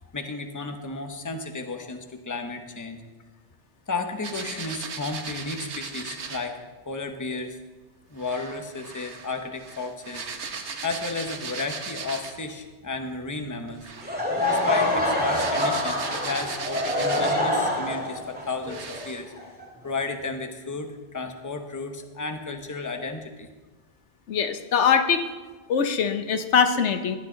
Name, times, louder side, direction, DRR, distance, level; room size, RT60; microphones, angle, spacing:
voice 1, 0.1-3.0 3.9-6.6 6.9-7.6 8.1-10.3 10.8-13.8 14.5-19.3 19.8-23.5, left 3 dB, 15° left, 5 dB, 0.9 m, -33 dB
sound 1, 4.2-6.5 8.2-12.5 13.7-17.6 18.2-18.3 18.7-19.2, right 5 dB, 80° right, 1.4 m, -37 dB
Laughter / Crowd, 14.0-19.9, left 1 dB, 10° right, 2.3 m, -26 dB
voice 2, 24.3-25.3 25.7-27.2, left 6 dB, 85° left, 8 dB, 1.2 m, -22 dB
16.5 x 11.0 x 3.9 m, 1.3 s
omnidirectional pair, 1.1 m